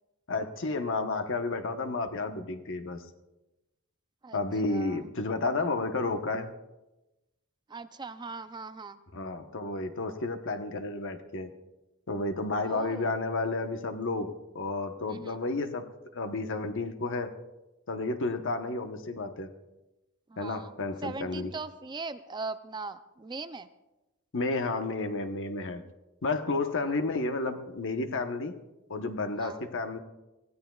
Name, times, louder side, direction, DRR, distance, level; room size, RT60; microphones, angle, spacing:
voice 1, 0.3-3.0 4.3-6.5 9.1-11.5 12.1-17.3 17.9-19.5 20.4-21.5 24.3-25.8 26.2-28.6 28.9-30.0, left 3 dB, 60° left, 7 dB, 1.0 m, -31 dB
voice 2, 4.6-5.0 7.7-9.0 12.6-13.1 15.1-15.4 20.3-20.7 21.0-23.7 29.4-29.6, right 3 dB, 20° right, 11 dB, 0.4 m, -40 dB
24.0 x 16.0 x 2.3 m, 1.0 s
head